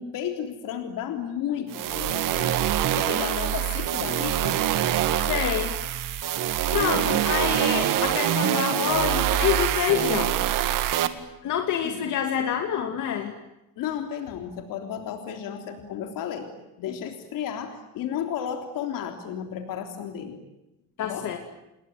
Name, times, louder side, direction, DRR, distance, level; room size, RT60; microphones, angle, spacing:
voice 1, 0.0-2.5 3.0-4.7 6.9-7.2 11.8-12.0 13.8-16.5 16.8-20.4 21.0-21.3, left 9 dB, 90° left, 5 dB, 3.5 m, -33 dB
sound 1, 1.7-11.1, right 12 dB, 80° right, 2.1 m, -25 dB
voice 2, 5.2-5.8 6.4-10.6 11.4-13.3 21.0-21.4, left 9 dB, 65° left, 4 dB, 2.7 m, -27 dB
29.0 x 21.5 x 9.3 m, 0.94 s
cardioid pair, 170°, 32 cm